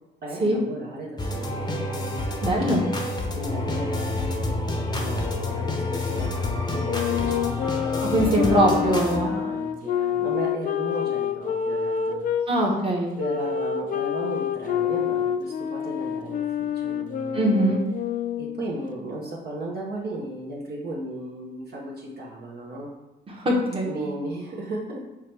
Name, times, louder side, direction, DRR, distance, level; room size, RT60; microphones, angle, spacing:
voice 1, 0.2-1.7 2.7-12.2 13.2-17.7 18.4-22.9 23.9-25.0, right 2 dB, 55° right, -3 dB, 0.9 m, -35 dB
sound 1, 1.2-9.2, left 2 dB, 20° left, 0.7 m, -28 dB
voice 2, 2.4-2.8 8.0-9.3 12.5-13.1 17.3-17.8 23.3-24.0, right 1 dB, 25° right, -2 dB, 1.1 m, -22 dB
sound 2, 6.8-12.5 13.2-18.7, left 8 dB, 45° left, 0.4 m, -27 dB
4.8 x 2.9 x 3.4 m, 1.0 s
cardioid pair, 90°, 20 cm